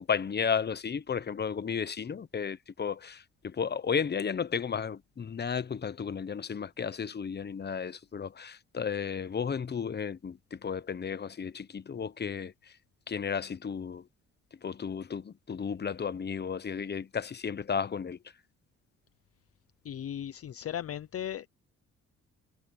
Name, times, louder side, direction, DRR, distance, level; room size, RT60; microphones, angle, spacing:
voice 1, 0.1-12.5 13.1-14.0 14.6-18.2, left 6 dB, 35° left, 1.1 m, -33 dB
voice 2, 19.8-21.5, left 10 dB, 50° left, 0.7 m, -37 dB
cardioid pair, 90°, 30 cm